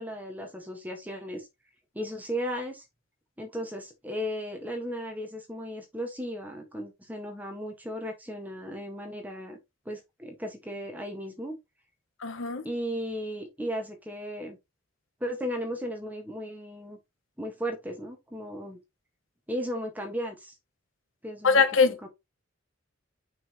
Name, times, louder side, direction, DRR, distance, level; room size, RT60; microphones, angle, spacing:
voice 1, 0.0-1.5 1.9-2.8 3.4-9.6 9.8-11.5 12.6-14.6 15.2-17.0 17.4-18.8 19.5-20.5 21.2-22.1, equal, 10° right, 1.6 m, -35 dB
voice 2, 12.2-12.6 21.4-22.0, left 5 dB, 80° left, 1.0 m, -22 dB
5.9 x 5.6 x 3.0 m
head